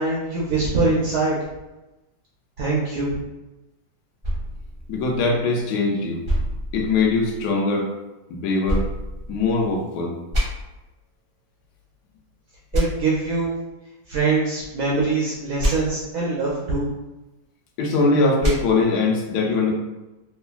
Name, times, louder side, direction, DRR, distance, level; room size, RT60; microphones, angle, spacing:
voice 1, 0.0-1.4 2.6-3.1 12.7-13.5 14.1-16.9, right 3 dB, 75° right, -5 dB, 0.9 m, -23 dB
sound 1, 4.2-5.7 6.2-7.5 8.7-9.8 10.3-10.4 12.7-12.8 15.6-15.7 18.4-18.5, equal, 35° right, 0.6 m, -26 dB
voice 2, 4.9-6.2 6.7-7.9 8.3-8.9 9.3-10.2 17.8-19.7, left 3 dB, 70° left, -1 dB, 1.1 m, -21 dB
3.2 x 2.2 x 2.3 m, 1.0 s
omnidirectional pair, 2.0 m